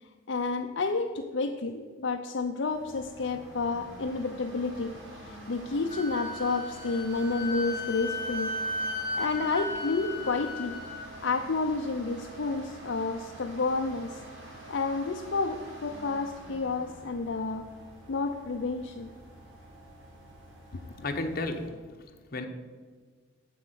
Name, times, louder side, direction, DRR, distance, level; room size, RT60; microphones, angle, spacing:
voice 1, 0.0-8.6 9.1-10.8 11.2-14.2 14.7-17.7 18.1-19.1 21.0-21.1, left 3 dB, 65° left, 4 dB, 0.6 m, -30 dB
sound 1, 2.7-21.7, right 1 dB, 80° right, 3.7 m, -47 dB
Wind instrument woodwind instrument, 5.9-11.0, left 1 dB, 20° left, 2.4 m, -35 dB
voice 2, 20.7-21.8 22.3-22.5, left 2 dB, 50° left, 4 dB, 1.1 m, -33 dB
8.0 x 6.7 x 8.1 m, 1.5 s
head